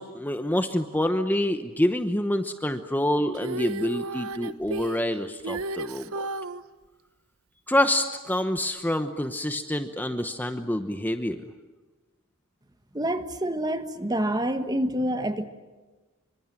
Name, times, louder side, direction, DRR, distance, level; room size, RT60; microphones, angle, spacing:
voice 1, 0.0-6.3 7.7-11.4, left 1 dB, 10° left, 1.0 m, -27 dB
Female singing, 3.3-6.6 8.6-8.7, right 2 dB, 90° right, 0.9 m, -33 dB
voice 2, 12.9-15.5, right 1 dB, 20° right, 1.4 m, -27 dB
26.5 x 24.5 x 9.0 m
head